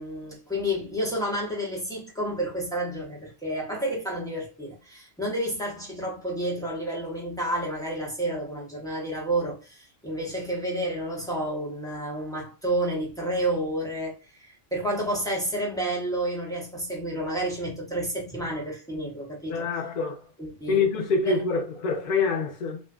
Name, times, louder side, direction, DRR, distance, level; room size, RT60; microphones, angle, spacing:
voice 1, 0.0-19.7 20.4-20.8 21.3-21.4, right 1 dB, 5° left, 0.6 m, -30 dB
voice 2, 19.5-20.2 20.7-22.8, left 4 dB, 60° left, 0.5 m, -25 dB
2.5 x 2.2 x 2.4 m
omnidirectional pair, 1.3 m